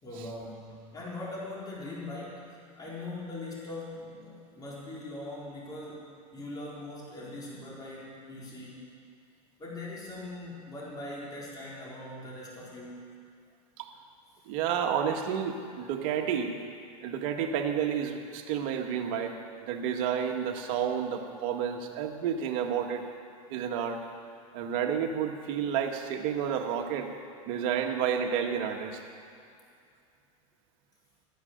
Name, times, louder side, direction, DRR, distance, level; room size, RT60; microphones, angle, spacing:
voice 1, 0.0-6.0 6.3-8.9 9.6-13.1, left 2 dB, 20° left, -6 dB, 4.2 m, -41 dB
voice 2, 14.5-16.5 17.0-19.3 19.6-23.0 23.5-24.0 24.5-27.1 27.5-29.0, right 8 dB, 65° right, 2 dB, 1.8 m, -30 dB
14.0 x 10.5 x 8.1 m, 2.4 s
supercardioid pair, 120°, 18 cm